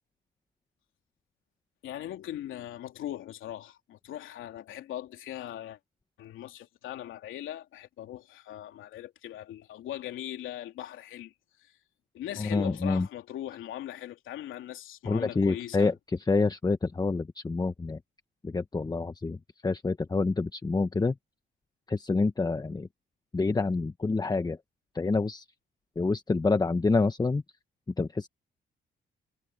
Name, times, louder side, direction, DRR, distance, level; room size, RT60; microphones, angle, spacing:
voice 1, 1.8-5.8 6.2-11.3 11.6-11.7 12.1-15.9, left 12 dB, 85° left, 3.2 m, -40 dB
voice 2, 12.4-13.1 15.0-18.0 18.4-19.4 19.6-21.1 21.9-22.9 23.3-24.6 24.9-25.4 26.0-27.4 28.0-28.3, left 3 dB, 20° left, 1.1 m, -27 dB
cardioid pair, 90°, 20 cm